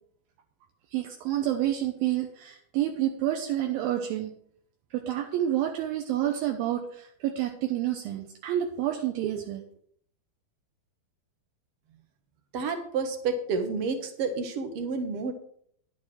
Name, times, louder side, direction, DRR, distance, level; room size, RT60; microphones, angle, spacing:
voice 1, 0.9-4.3 4.9-9.6, right 12 dB, 80° right, 3 dB, 2.6 m, -29 dB
voice 2, 12.5-15.3, right 4 dB, 60° right, 6 dB, 1.6 m, -30 dB
10.5 x 6.9 x 6.2 m, 0.63 s
omnidirectional pair, 4.3 m